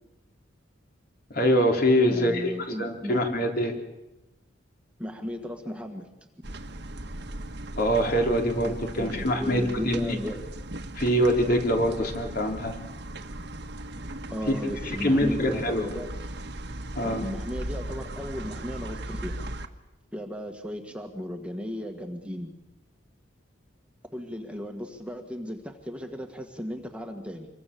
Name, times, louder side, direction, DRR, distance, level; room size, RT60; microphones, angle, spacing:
voice 1, 1.3-2.5 2.8-3.7 7.8-10.2 10.9-12.8 14.8-15.9 17.0-17.2, equal, 50° left, 2 dB, 3.8 m, -24 dB
voice 2, 2.1-3.2 5.0-6.1 8.6-10.4 14.3-16.1 17.0-19.5 20.1-22.5 24.1-27.5, equal, 5° right, 3 dB, 1.7 m, -36 dB
sound 1, 6.4-19.7, right 1 dB, 60° right, 1.5 m, -38 dB
27.0 x 23.0 x 7.0 m, 0.97 s
head